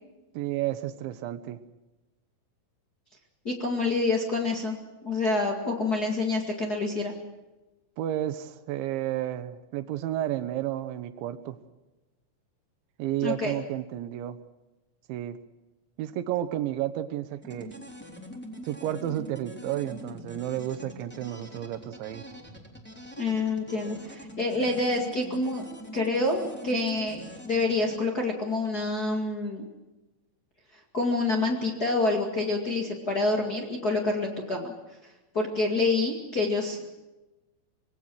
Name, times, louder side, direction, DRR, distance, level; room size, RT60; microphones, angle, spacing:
voice 1, 0.3-1.6 8.0-11.6 13.0-14.4 15.1-15.4 16.0-17.8 18.6-22.2, right 12 dB, 75° right, 12 dB, 3.1 m, -31 dB
voice 2, 3.4-7.1 13.2-13.5 23.2-25.6 25.9-29.7 30.9-34.7 35.3-36.9, left 2 dB, 50° left, 0 dB, 1.1 m, -27 dB
sound 1, 17.4-28.0, equal, 5° left, 2.1 m, -44 dB
25.5 x 20.0 x 6.3 m, 1.1 s
omnidirectional pair, 5.7 m